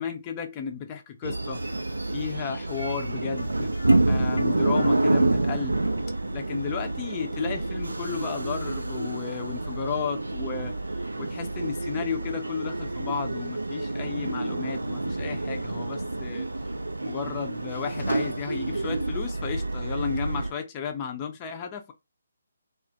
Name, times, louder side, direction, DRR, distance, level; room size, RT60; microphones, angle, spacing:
voice 1, 0.0-1.6 2.1-3.7 4.1-5.8 6.3-10.7 11.2-16.5 17.0-21.9, left 7 dB, 25° left, 0.5 m, -33 dB
sound 1, 1.2-20.5, right 2 dB, 80° right, 0.3 m, -28 dB
sound 2, 2.7-9.6 9.9-10.0 10.5-10.7 11.0-11.1, left 1 dB, 75° left, 0.7 m, -43 dB
2.2 x 2.1 x 2.7 m
figure-of-eight pair, 140°, 0 cm